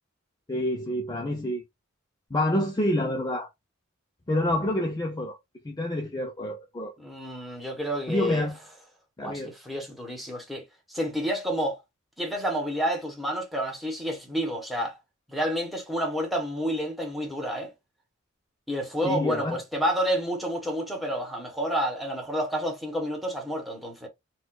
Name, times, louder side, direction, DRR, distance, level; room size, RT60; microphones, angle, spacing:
voice 1, 0.5-1.6 2.3-3.5 4.3-5.4 5.6-6.9 8.1-8.6 9.2-9.5 19.0-19.6, left 1 dB, 20° left, 0.5 m, -27 dB
voice 2, 7.0-8.5 9.2-11.8 12.2-15.0 15.3-17.7 18.7-24.1, equal, ahead, 1.0 m, -29 dB
4.2 x 2.3 x 2.2 m
head